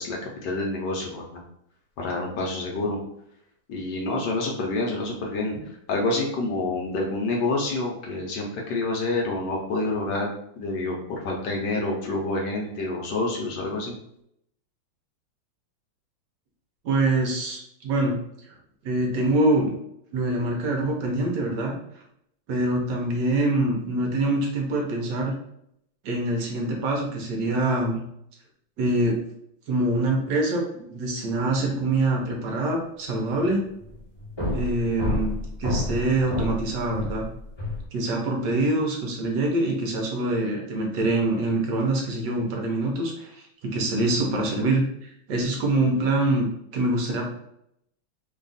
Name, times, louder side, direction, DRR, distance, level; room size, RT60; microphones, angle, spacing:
voice 1, 0.0-1.4 2.0-3.0 3.7-5.5 5.9-10.3 10.6-13.9, left 2 dB, 65° left, -1 dB, 1.2 m, -28 dB
voice 2, 16.8-18.2 18.8-19.7 20.1-21.7 22.5-25.3 26.0-28.0 28.8-29.2 29.7-33.6 34.5-37.3 37.9-43.5 43.7-46.5 46.7-47.3, right 2 dB, 70° right, 0 dB, 1.3 m, -25 dB
sound 1, 33.3-33.6 33.8-37.8, left 1 dB, 25° left, 0.6 m, -30 dB
3.4 x 2.3 x 3.9 m, 0.75 s
omnidirectional pair, 2.1 m